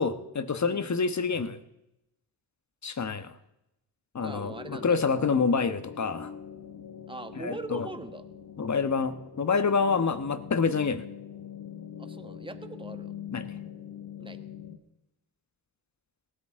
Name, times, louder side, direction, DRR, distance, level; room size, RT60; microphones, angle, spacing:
voice 1, 0.0-1.6 2.8-3.3 4.1-6.3 7.3-7.9 8.6-11.0 13.3-13.4, left 5 dB, 40° left, 11 dB, 1.3 m, -27 dB
sound 1, 4.2-14.8, left 8 dB, 60° left, 1.8 m, -43 dB
voice 2, 4.2-5.0 7.1-8.2 12.0-13.1 14.2-14.4, right 2 dB, 10° right, 8 dB, 1.4 m, -41 dB
18.5 x 13.0 x 3.7 m, 0.88 s
cardioid pair, 65°, 42 cm